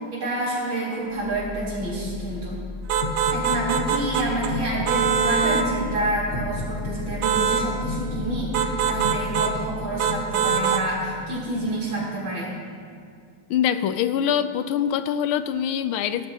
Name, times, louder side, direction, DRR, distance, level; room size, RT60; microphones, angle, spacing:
voice 1, 0.1-2.6 3.3-12.6, right 1 dB, 70° right, -7 dB, 4.5 m, -28 dB
sound 1, 1.1-13.0, left 2 dB, 30° left, 1.1 m, -33 dB
sound 2, 2.9-4.5 4.9-5.7 7.2-7.7 8.5-9.6 10.0-10.9, right 7 dB, 90° right, 1.7 m, -23 dB
voice 2, 13.5-16.3, left 9 dB, 90° left, 12 dB, 1.5 m, -24 dB
19.0 x 11.5 x 2.9 m, 2.2 s
omnidirectional pair, 2.3 m